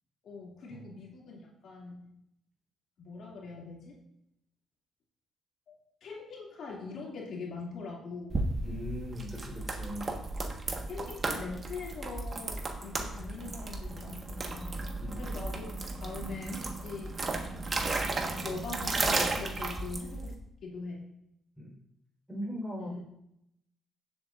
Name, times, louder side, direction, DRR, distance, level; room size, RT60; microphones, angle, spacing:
voice 1, 0.2-2.1 3.0-3.9 5.7-8.5 10.9-14.9 15.2-17.1 18.2-20.3 20.6-21.1 22.8-23.0, left 4 dB, 65° left, -3 dB, 2.6 m, -42 dB
sound 1, 8.3-20.3, right 3 dB, 35° right, 1.5 m, -34 dB
voice 2, 8.6-10.1 14.8-15.3 21.6-21.7 22.3-23.0, equal, 5° right, -2 dB, 4.3 m, -40 dB
16.5 x 7.9 x 2.6 m, 0.79 s
cardioid pair, 90°, 0 cm